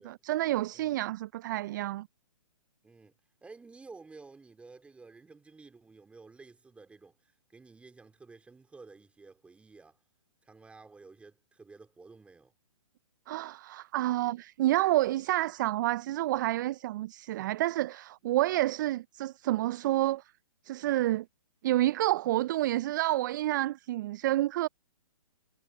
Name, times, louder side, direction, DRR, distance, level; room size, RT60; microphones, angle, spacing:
voice 1, 0.0-2.1 13.3-20.2 20.6-21.3 21.6-24.7, right 15 dB, 35° right, 0.4 m, -29 dB
voice 2, 2.8-3.1 3.4-10.0 10.4-12.5, right 4 dB, 5° right, 3.1 m, -52 dB
hypercardioid pair, 130°, 17 cm